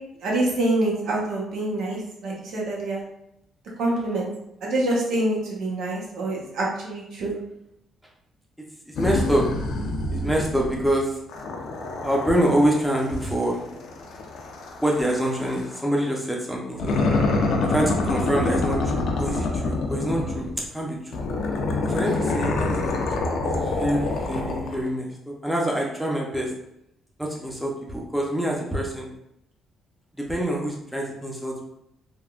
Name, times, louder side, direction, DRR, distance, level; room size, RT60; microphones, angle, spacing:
voice 1, 0.2-3.0 3.8-4.3 4.6-7.3, right 1 dB, 80° right, -3 dB, 0.9 m, -26 dB
voice 2, 8.9-9.4 10.1-11.2 12.0-13.6 14.8-17.0 17.6-20.5 20.7-21.2 21.8-26.5 27.2-29.1 30.3-31.6, right 1 dB, ahead, -2 dB, 0.7 m, -26 dB
sound 1, 9.0-10.9 11.3-15.8 16.8-20.7 21.1-24.9, left 2 dB, 75° left, 0.5 m, -27 dB
3.5 x 2.2 x 2.3 m, 0.81 s
cardioid pair, 90°, 0 cm